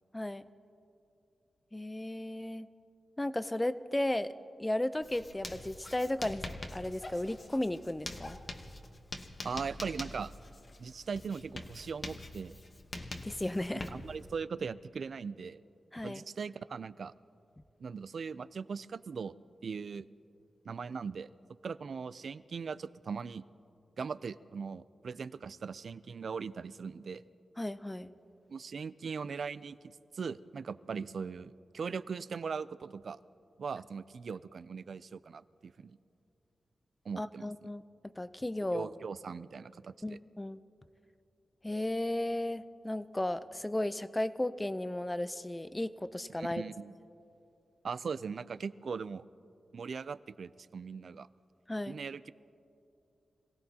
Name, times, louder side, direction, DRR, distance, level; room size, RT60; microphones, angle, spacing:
voice 1, 1.7-2.7 3.2-4.3 4.6-6.4 6.7-8.4 13.2-13.9 15.9-16.2 27.6-28.1 37.2-38.9 40.0-40.6 41.6-46.6 51.7-52.0, left 1 dB, 15° left, 13 dB, 0.5 m, -34 dB
Writing, 5.0-14.3, left 2 dB, 40° left, 1.1 m, -45 dB
voice 2, 9.4-10.3 10.8-12.6 13.9-15.6 16.0-17.1 17.8-19.4 19.6-20.1 20.6-21.3 21.6-23.4 24.0-27.2 28.5-29.8 30.1-33.2 33.6-36.0 37.1-37.7 38.7-40.2 46.4-46.9 47.8-49.3 49.7-51.3 51.9-52.3, right 5 dB, 65° right, 16 dB, 0.4 m, -40 dB
26.5 x 17.0 x 2.9 m, 2.6 s
cardioid pair, 85°, 0 cm